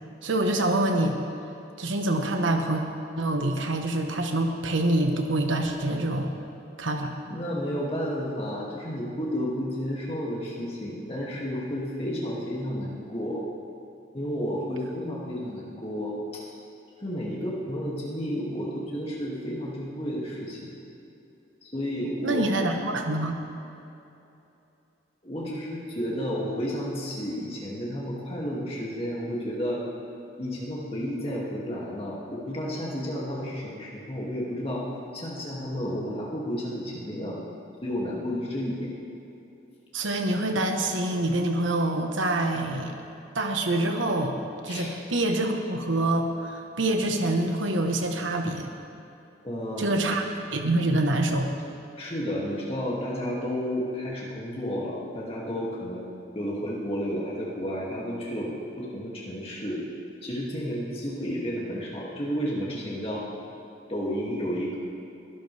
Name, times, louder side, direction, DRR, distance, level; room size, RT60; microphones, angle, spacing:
voice 1, 0.2-1.2 1.8-2.8 3.2-6.3 6.8-7.1 22.2-23.4 39.9-42.9 43.3-44.4 44.6-48.7 49.8-51.5, right 1 dB, 85° right, 4 dB, 1.3 m, -26 dB
voice 2, 7.3-13.4 14.1-16.5 17.0-20.8 21.6-22.5 25.2-29.8 30.4-34.9 35.1-37.4 37.8-38.9 44.7-44.9 49.4-50.0 52.0-56.1 56.3-58.5 58.8-59.8 60.2-63.3 63.9-64.7, equal, 30° left, -5 dB, 2.5 m, -31 dB
21.5 x 12.5 x 3.5 m, 2.8 s
head